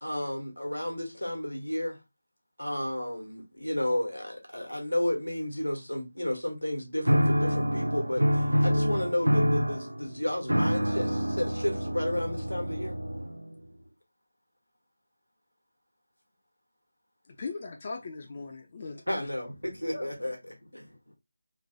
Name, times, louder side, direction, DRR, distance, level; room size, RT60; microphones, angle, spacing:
voice 1, 0.0-2.0 2.6-12.9 19.1-20.4 20.7-20.8, left 1 dB, 90° left, 1.1 m, -32 dB
sound 1, 7.1-13.5, equal, 75° right, 0.3 m, -27 dB
voice 2, 17.3-19.3, left 4 dB, 30° left, 0.3 m, -39 dB
voice 3, 19.6-21.1, equal, 70° left, 0.6 m, -48 dB
3.0 x 2.1 x 2.7 m
figure-of-eight pair, 160°, 0 cm